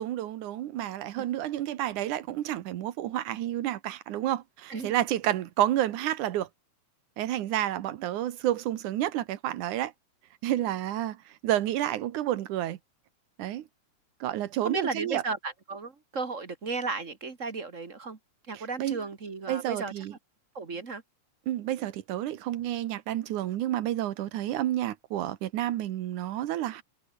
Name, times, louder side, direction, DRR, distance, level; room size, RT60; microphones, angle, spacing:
voice 1, 0.0-6.5 7.2-9.9 10.4-11.2 11.4-12.8 13.4-13.6 14.2-15.2 18.5-19.0 19.5-20.1 21.5-26.8, right 13 dB, 75° right, 2.5 m, -30 dB
voice 2, 14.6-18.2 18.5-20.2 20.5-21.0, right 4 dB, 30° right, 1.6 m, -34 dB
omnidirectional pair, 3.7 m